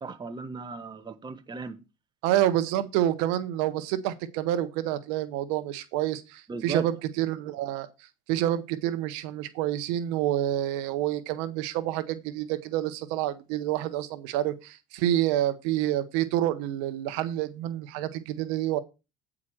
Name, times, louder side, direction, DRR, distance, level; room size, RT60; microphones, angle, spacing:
voice 1, 0.0-1.8 6.5-6.9, right 5 dB, 25° right, 1.3 m, -36 dB
voice 2, 2.2-7.9 8.3-18.8, right 13 dB, 85° right, 0.9 m, -28 dB
8.6 x 4.9 x 6.1 m
supercardioid pair, 100°, 17 cm